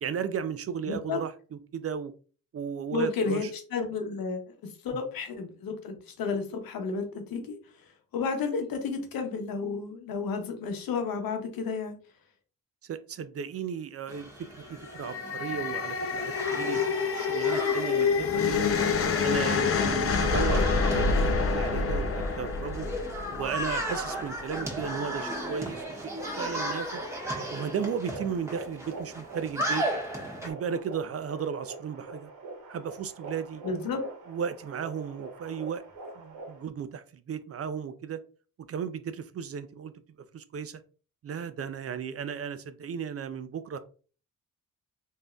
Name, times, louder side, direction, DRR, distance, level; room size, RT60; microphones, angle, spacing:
voice 1, 0.0-2.1 2.5-3.5 12.8-14.3 14.6-16.8 17.1-18.7 19.2-22.9 23.3-27.1 27.5-29.9 30.4-32.3 32.7-33.6 34.3-35.8 36.2-38.2 38.7-39.9 40.3-40.8 41.2-43.8, right 7 dB, 45° right, 0.4 m, -35 dB
voice 2, 0.9-1.2 2.9-4.5 4.8-7.6 8.1-11.9 33.6-34.0, left 4 dB, 75° left, 0.8 m, -32 dB
sound 1, 14.1-30.5, right 1 dB, 10° right, 1.3 m, -36 dB
sound 2, 14.8-24.1, left 5 dB, 40° left, 0.6 m, -27 dB
sound 3, 24.5-36.7, right 3 dB, 65° right, 1.1 m, -44 dB
3.2 x 2.7 x 2.3 m
supercardioid pair, 55°, 35 cm